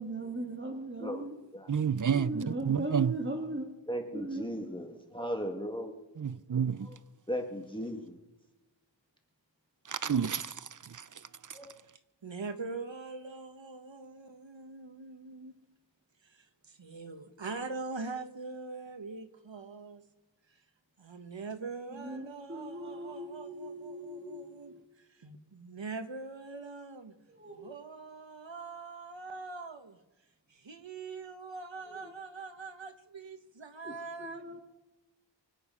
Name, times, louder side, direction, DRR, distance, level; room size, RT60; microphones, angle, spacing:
voice 1, 0.0-1.3 2.1-3.7 4.1-4.5 21.9-24.8 27.3-27.7 31.8-32.1 33.8-33.9 34.2-34.6, right 2 dB, 25° right, 2.2 m, -39 dB
voice 2, 0.9-1.4 12.2-15.6 16.2-20.0 20.5-20.6 21.0-27.1 27.5-30.0 30.5-34.6, right 3 dB, 75° right, 1.6 m, -43 dB
voice 3, 1.7-3.1 6.2-6.9 9.8-11.6, right 7 dB, 45° right, 0.5 m, -30 dB
voice 4, 3.9-6.0 6.9-7.0 7.3-8.2 11.5-11.7, equal, 10° left, 2.1 m, -37 dB
24.5 x 9.3 x 5.6 m
wide cardioid pair, 65°, 45 cm